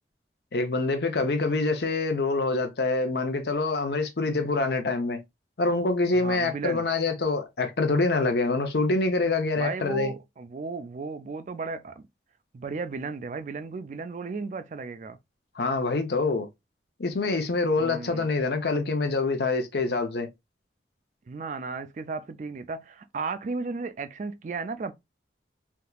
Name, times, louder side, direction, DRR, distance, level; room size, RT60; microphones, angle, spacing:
voice 1, 0.5-5.2 5.6-10.1 15.6-16.5 17.0-20.3, left 3 dB, 65° left, 0.7 m, -25 dB
voice 2, 6.1-6.8 9.5-12.0 12.5-15.2 17.7-18.3 21.3-24.9, right 4 dB, 45° right, 0.3 m, -34 dB
3.5 x 2.8 x 2.3 m
head